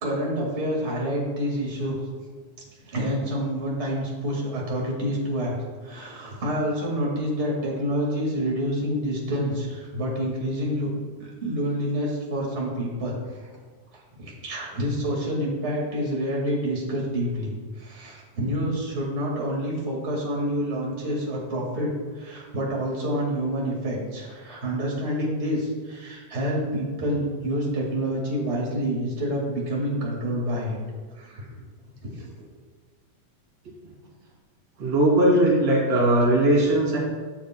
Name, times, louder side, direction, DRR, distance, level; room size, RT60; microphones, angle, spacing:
voice 1, 0.0-2.0 2.9-5.5 5.8-10.9 11.2-13.1 14.1-30.8 31.2-31.5 32.1-32.3, equal, 25° right, -3 dB, 1.7 m, -28 dB
voice 2, 34.8-37.0, right 1 dB, 60° right, -5 dB, 3.4 m, -19 dB
12.0 x 6.7 x 2.2 m, 1.5 s
omnidirectional pair, 3.4 m